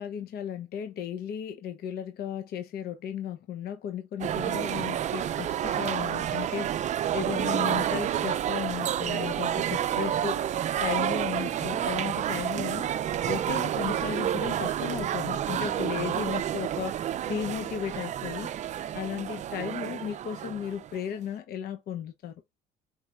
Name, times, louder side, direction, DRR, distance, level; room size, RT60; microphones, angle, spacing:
voice 1, 0.0-10.5 10.8-12.9 13.3-18.5 18.9-22.4, left 9 dB, 65° left, 0.7 m, -35 dB
sound 1, 4.2-21.0, right 10 dB, 45° right, 0.4 m, -29 dB
4.8 x 3.1 x 2.2 m
cardioid pair, 110°, 17 cm